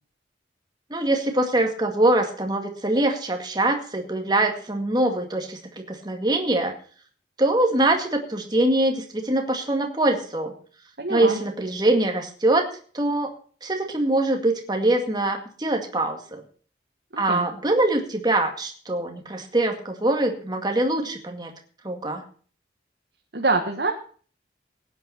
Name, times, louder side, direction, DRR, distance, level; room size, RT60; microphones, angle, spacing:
voice 1, 0.9-6.8 7.4-10.5 11.1-12.7 12.9-13.3 13.6-16.4 17.2-21.5 21.8-22.2, right 2 dB, 25° right, 4 dB, 2.1 m, -23 dB
voice 2, 11.0-11.4 17.1-17.5 23.3-23.9, right 3 dB, 65° right, 2 dB, 1.7 m, -25 dB
17.5 x 9.4 x 4.4 m, 0.42 s
head